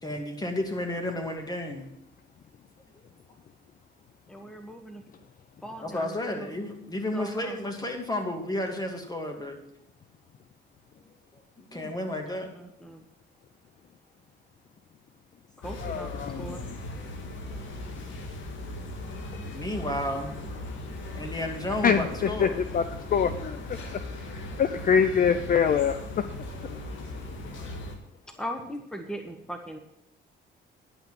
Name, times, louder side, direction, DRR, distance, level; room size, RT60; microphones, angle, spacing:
voice 1, 0.0-1.9 5.8-9.6 11.3-12.5 17.3-17.5 19.5-20.4 21.1-22.6, left 1 dB, 20° left, 3 dB, 2.3 m, -32 dB
voice 2, 4.3-5.0 5.6-6.5 7.1-7.6 11.7-11.9 12.3-13.0 15.6-16.1 16.4-16.7 28.4-29.8, equal, 5° left, 5 dB, 1.1 m, -39 dB
sound 1, 15.6-28.0, left 1 dB, 75° left, 1.9 m, -38 dB
voice 3, 15.8-16.7 21.8-22.0 22.4-22.5 22.7-22.8 23.1-24.0 24.6-26.3, left 7 dB, 45° left, 11 dB, 0.5 m, -24 dB
10.0 x 6.0 x 7.5 m, 0.76 s
cardioid pair, 90°, 20 cm